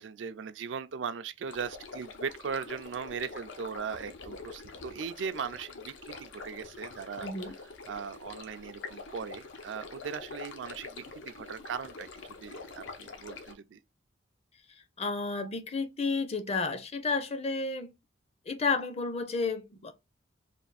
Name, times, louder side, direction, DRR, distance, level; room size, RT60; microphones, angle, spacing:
voice 1, 0.0-7.5 7.9-13.8, right 6 dB, 75° right, 0.4 m, -39 dB
sound 1, 1.5-13.5, left 4 dB, 75° left, 0.6 m, -45 dB
voice 2, 7.2-7.6 15.0-17.9 18.5-19.9, left 4 dB, 35° left, 0.5 m, -31 dB
3.4 x 2.4 x 4.0 m
head